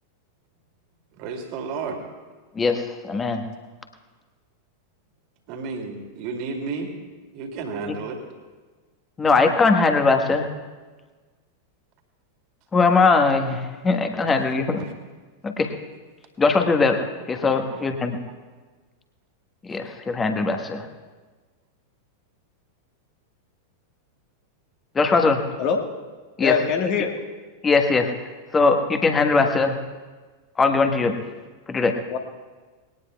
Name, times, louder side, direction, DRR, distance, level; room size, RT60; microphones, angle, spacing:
voice 1, 1.2-2.0 5.5-6.9 7.3-8.2 14.8-14.9 17.7-17.9, right 4 dB, 45° right, 3 dB, 2.4 m, -32 dB
voice 2, 2.5-3.5 7.9-8.0 9.2-10.5 12.7-14.9 15.4-15.7 16.4-17.0 17.3-18.2 19.7-20.9 24.9-25.4 26.4-26.6 27.6-28.1 28.5-29.8 30.6-31.2 31.7-31.9, left 4 dB, 15° left, 6 dB, 1.4 m, -20 dB
voice 3, 26.4-27.1 29.4-29.5 32.1-32.2, left 6 dB, 45° left, 2 dB, 1.5 m, -23 dB
21.0 x 18.5 x 2.3 m, 1.3 s
figure-of-eight pair, 90°, 0 cm